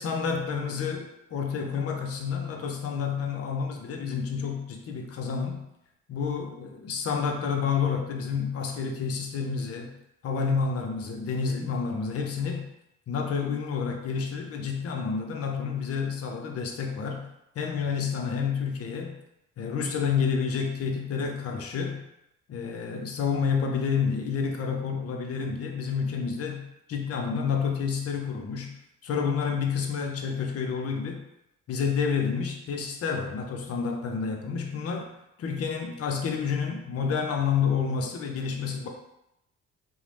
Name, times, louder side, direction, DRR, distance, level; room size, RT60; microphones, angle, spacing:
voice 1, 0.0-5.6 6.1-9.9 10.2-12.7 13.1-17.3 17.6-19.2 19.6-22.0 22.5-28.7 29.0-31.2 31.7-35.1 35.4-38.9, left 6 dB, 55° left, 3 dB, 0.5 m, -29 dB
2.7 x 2.0 x 3.2 m, 0.84 s
cardioid pair, 90°, 30 cm